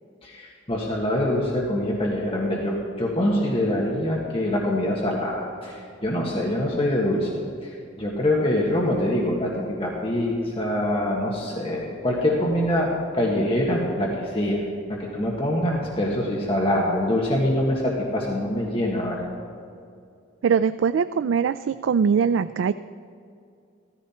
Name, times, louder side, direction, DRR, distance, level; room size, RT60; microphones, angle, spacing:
voice 1, 0.2-9.5 9.8-12.9 13.1-14.6 14.9-19.3, left 1 dB, 30° left, -2 dB, 1.6 m, -24 dB
voice 2, 20.4-22.7, right 6 dB, 80° right, 12 dB, 0.3 m, -22 dB
15.0 x 14.5 x 4.4 m, 2.4 s
head